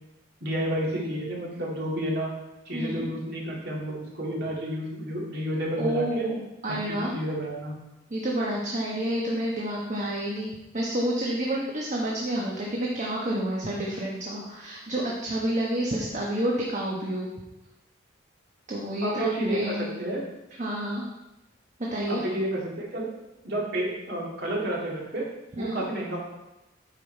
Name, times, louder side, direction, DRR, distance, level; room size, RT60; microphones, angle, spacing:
voice 1, 0.4-2.3 2.7-6.3 6.7-7.8 19.0-20.2 22.1-23.1 23.4-25.3 25.6-26.2, right 1 dB, 55° right, -3 dB, 2.2 m, -30 dB
voice 2, 2.7-3.1 5.8-7.1 8.1-17.3 18.7-19.9 20.6-21.0 21.9-22.2 25.6-25.8, right 1 dB, 40° right, -3 dB, 1.1 m, -29 dB
8.3 x 5.7 x 4.4 m, 0.96 s
head